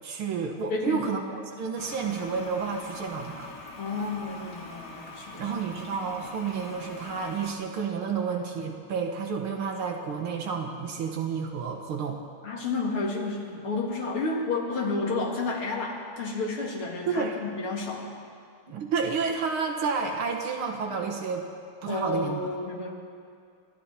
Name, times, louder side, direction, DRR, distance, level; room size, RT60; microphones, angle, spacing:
voice 1, 0.0-3.5 5.4-12.2 17.1-17.4 18.7-21.5 21.8-22.4, right 5 dB, 80° right, 2 dB, 2.3 m, -30 dB
voice 2, 0.7-1.1 3.8-5.5 12.4-18.1 21.9-22.9, left 3 dB, 80° left, 0 dB, 2.8 m, -31 dB
Toilet flush, 1.8-7.5, left 2 dB, 55° left, 1.9 m, -43 dB
26.5 x 12.5 x 4.4 m, 2.3 s
omnidirectional pair, 2.3 m